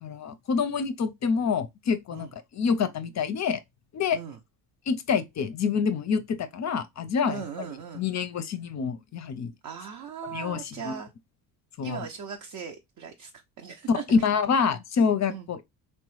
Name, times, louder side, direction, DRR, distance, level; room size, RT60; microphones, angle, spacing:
voice 1, 0.0-3.6 3.9-4.2 4.9-7.4 7.9-9.5 10.2-11.0 11.8-12.1 13.9-15.6, left 6 dB, 35° left, 0.5 m, -27 dB
voice 2, 7.3-8.0 9.6-11.1 11.8-13.3 13.6-14.2 14.5-14.7 15.3-15.5, right 7 dB, 45° right, 0.5 m, -39 dB
3.0 x 2.2 x 3.0 m
hypercardioid pair, 55°, 48 cm